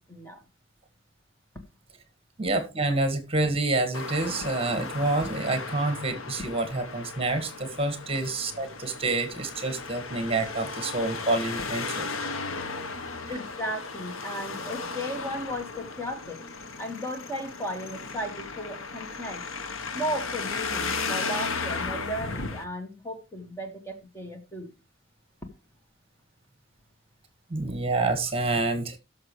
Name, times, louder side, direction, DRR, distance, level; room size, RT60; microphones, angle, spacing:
voice 1, 0.1-0.4 13.3-16.4 16.8-19.4 19.9-24.7, equal, 10° left, 1.7 m, -35 dB
voice 2, 2.4-12.1 13.3-13.4 27.5-29.0, right 2 dB, 30° right, 1.8 m, -28 dB
Traffic noise roadway noise, 3.9-22.6, left 4 dB, 85° left, 1.1 m, -35 dB
17.5 x 6.8 x 3.2 m
head